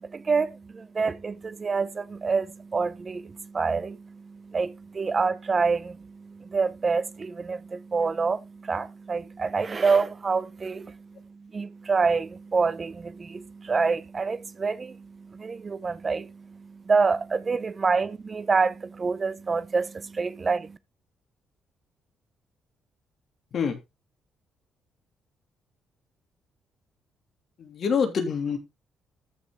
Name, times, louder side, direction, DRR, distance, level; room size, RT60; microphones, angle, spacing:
voice 1, 0.0-20.8, right 4 dB, 35° right, 1.0 m, -27 dB
voice 2, 27.6-28.6, left 6 dB, 55° left, 3.2 m, -26 dB
14.0 x 5.8 x 3.9 m
cardioid pair, 90°, 0 cm